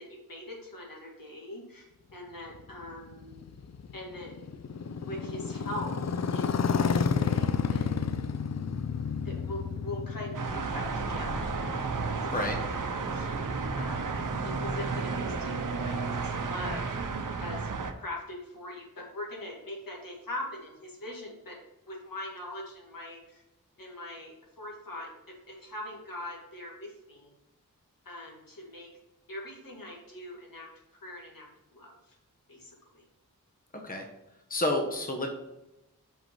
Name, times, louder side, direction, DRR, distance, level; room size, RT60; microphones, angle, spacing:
voice 1, 0.0-3.4 3.9-4.3 5.0-5.9 6.3-7.9 9.2-11.5 12.2-12.7 13.0-21.6 21.9-23.4 23.8-25.1 25.5-27.3 28.0-28.9 29.3-30.7 31.0-32.2 32.5-33.0, left 1 dB, 75° left, -2 dB, 2.1 m, -42 dB
Motorcycle, 2.5-12.5, left 6 dB, 50° left, 0.5 m, -31 dB
sound 1, 10.3-17.9, right 4 dB, 65° right, 0.8 m, -32 dB
voice 2, 34.5-35.3, left 1 dB, 25° left, 2 dB, 1.0 m, -29 dB
5.6 x 5.5 x 4.5 m, 0.94 s
wide cardioid pair, 95°, 34 cm